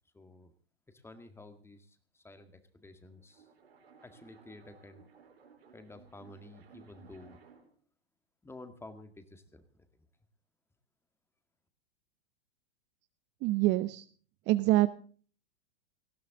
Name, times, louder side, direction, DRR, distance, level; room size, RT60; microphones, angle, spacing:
voice 1, 0.1-0.5 0.9-3.5 4.0-5.1 5.7-7.4 8.4-10.0, left 2 dB, 10° left, 9 dB, 1.9 m, -52 dB
sound 1, 2.9-7.8, right 6 dB, 75° right, 4.2 m, -59 dB
voice 2, 13.4-14.1 14.5-14.9, right 16 dB, 35° right, 13 dB, 0.8 m, -25 dB
18.5 x 15.5 x 3.8 m, 0.43 s
hypercardioid pair, 100°, 31 cm